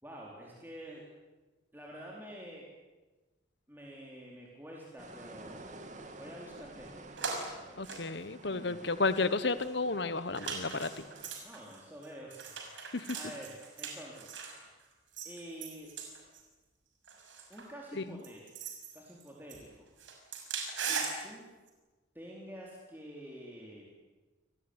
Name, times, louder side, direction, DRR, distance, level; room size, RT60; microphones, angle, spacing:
voice 1, 0.0-1.0 1.7-2.7 3.7-5.6 6.1-7.2 7.5-7.9 8.5-8.9 11.4-14.3 15.2-15.9 17.5-18.4 18.9-19.8 20.8-21.5 22.1-23.9, equal, 10° right, -3 dB, 4.3 m, -48 dB
sound 1, 5.0-11.3, right 2 dB, 40° right, 2.8 m, -51 dB
sound 2, 7.2-7.5 7.8-8.7 9.1-9.2 9.6-9.7 10.4-14.6 15.1-16.4 17.1-17.7 18.2-19.7 20.0-21.2 21.7-21.8, right 5 dB, 75° right, 6.3 m, -40 dB
voice 2, 7.8-11.1 12.9-13.1 18.0-18.1, left 3 dB, 60° left, 14 dB, 1.2 m, -32 dB
29.0 x 19.5 x 9.8 m, 1.2 s
head